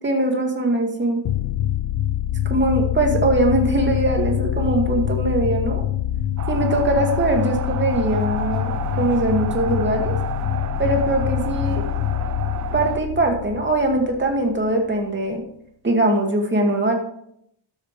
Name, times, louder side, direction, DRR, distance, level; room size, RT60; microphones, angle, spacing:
voice 1, 0.0-1.2 2.5-5.8 6.5-10.2 10.8-11.9 12.7-15.4 15.8-17.0, right 2 dB, 25° right, 2 dB, 2.0 m, -21 dB
sound 1, 1.2-14.7, left 12 dB, 55° left, 0.5 m, -25 dB
sound 2, 6.4-13.0, right 8 dB, 40° right, 0.5 m, -32 dB
12.5 x 8.4 x 3.2 m, 0.71 s
wide cardioid pair, 135°, 47 cm